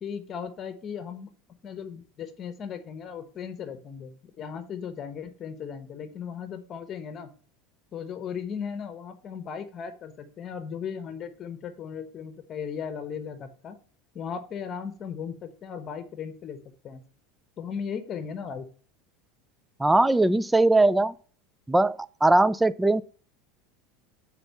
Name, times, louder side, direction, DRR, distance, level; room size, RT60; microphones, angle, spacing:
voice 1, 0.0-1.3 1.6-7.3 7.9-13.8 14.1-16.6 16.8-17.0 17.6-18.7, left 7 dB, 35° left, 1.0 m, -37 dB
voice 2, 19.8-21.1 21.7-23.0, right 2 dB, 5° right, 0.3 m, -20 dB
5.9 x 4.4 x 5.4 m
supercardioid pair, 120°, 0 cm